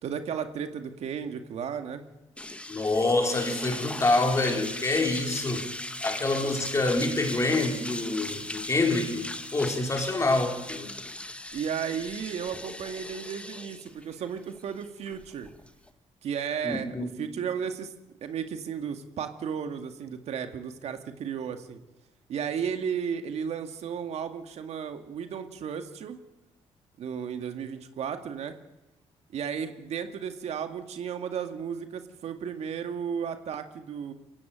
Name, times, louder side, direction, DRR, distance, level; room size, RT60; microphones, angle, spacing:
voice 1, 0.0-2.0 11.5-15.5 16.2-17.9 18.2-21.8 22.3-26.2 27.0-28.6 29.3-34.1, right 7 dB, 70° right, 2.1 m, -34 dB
sound 1, 2.4-15.9, left 1 dB, 10° left, 1.7 m, -38 dB
voice 2, 2.7-5.7 6.0-9.3 9.5-10.9 16.6-17.2, left 2 dB, 25° left, 4.7 m, -26 dB
22.5 x 16.0 x 9.3 m
cardioid pair, 100°, 11 cm